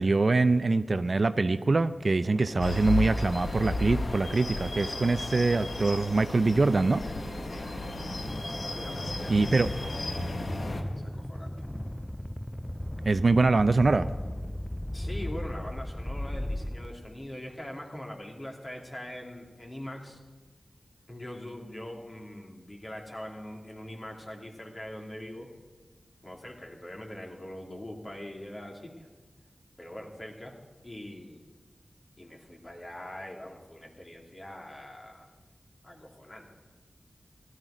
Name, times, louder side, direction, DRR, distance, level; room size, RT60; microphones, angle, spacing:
voice 1, 0.0-7.0 9.3-9.7 13.1-14.1, right 3 dB, 55° right, 12 dB, 0.5 m, -24 dB
sound 1, 2.2-17.3, left 1 dB, 10° left, 0.4 m, -38 dB
sound 2, 2.6-10.8, left 2 dB, 70° left, 1.5 m, -34 dB
voice 2, 8.7-9.5 10.3-11.5 14.9-20.2 21.1-25.5 26.2-29.1 29.8-30.6 30.8-31.4 32.2-35.3 35.8-36.5, left 1 dB, 35° left, 0 dB, 2.7 m, -42 dB
16.0 x 12.5 x 5.0 m, 1.3 s
wide cardioid pair, 65°, 0 cm